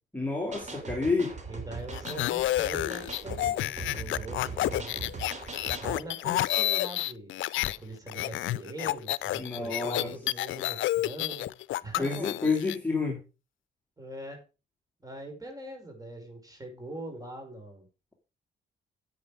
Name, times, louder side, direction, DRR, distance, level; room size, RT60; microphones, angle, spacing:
voice 1, 0.1-1.3 9.4-10.1 12.0-13.2, left 4 dB, 10° left, 2.5 m, -29 dB
sound 1, 0.5-6.0, right 4 dB, 35° right, 3.3 m, -40 dB
voice 2, 1.5-5.1 5.8-7.3 7.8-11.5 11.8-12.3 14.0-14.4 15.0-17.9, right 1 dB, 20° right, 5.1 m, -42 dB
sound 2, 1.9-7.8 8.1-12.8, left 16 dB, 80° left, 0.5 m, -30 dB
9.7 x 8.6 x 5.0 m
cardioid pair, 90°, 20 cm